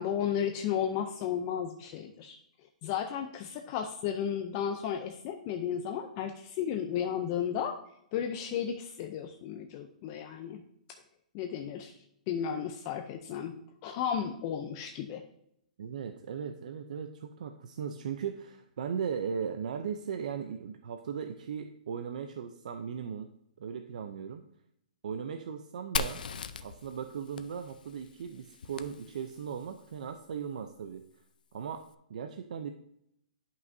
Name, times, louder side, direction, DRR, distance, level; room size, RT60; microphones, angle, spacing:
voice 1, 0.0-2.4 2.8-7.7 8.1-10.6 11.3-12.0 12.3-13.6 13.8-15.2, left 8 dB, 30° left, 5 dB, 0.5 m, -33 dB
voice 2, 15.8-23.3 23.6-24.4 25.0-26.2 26.6-31.1 31.5-32.7, right 7 dB, 65° right, 7 dB, 0.6 m, -37 dB
Fire, 26.0-29.6, left 5 dB, 90° left, 0.5 m, -39 dB
10.5 x 5.6 x 2.7 m, 0.74 s
hypercardioid pair, 165°, 4 cm